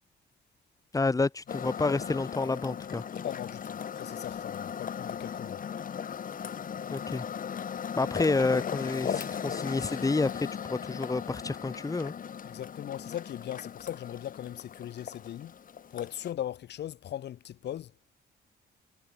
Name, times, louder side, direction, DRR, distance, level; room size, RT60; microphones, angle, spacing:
voice 1, 0.9-3.0 6.9-7.2 7.9-12.1, left 3 dB, 20° left, 3.3 m, -29 dB
sound 1, 1.5-16.3, left 8 dB, 50° left, 7.5 m, -37 dB
voice 2, 3.2-5.6 12.4-15.6 15.9-17.9, left 11 dB, 70° left, 3.1 m, -39 dB
cardioid pair, 120°, 18 cm